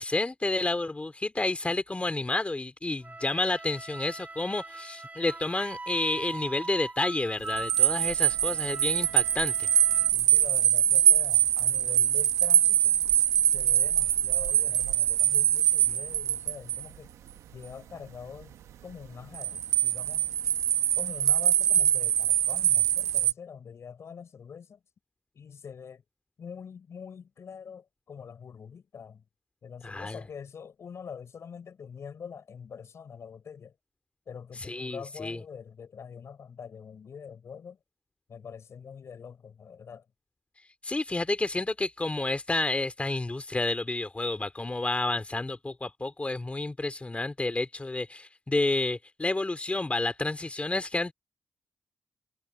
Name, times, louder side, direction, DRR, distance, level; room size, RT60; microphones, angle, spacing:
voice 1, 0.0-9.5 29.8-30.2 34.6-35.4 40.8-51.1, left 2 dB, 25° left, 2.4 m, -30 dB
Wind instrument woodwind instrument, 3.0-10.1, right 3 dB, 30° right, 4.0 m, -41 dB
sound 1, 7.5-16.8 19.3-23.3, right 11 dB, 90° right, 0.9 m, -24 dB
voice 2, 10.1-13.0 13.4-17.1 17.5-18.6 18.8-20.5 21.0-24.8 25.3-26.0 26.4-29.2 29.6-33.8 34.3-37.8 38.3-40.1, left 6 dB, 65° left, 5.8 m, -44 dB
supercardioid pair, 55°, 5 cm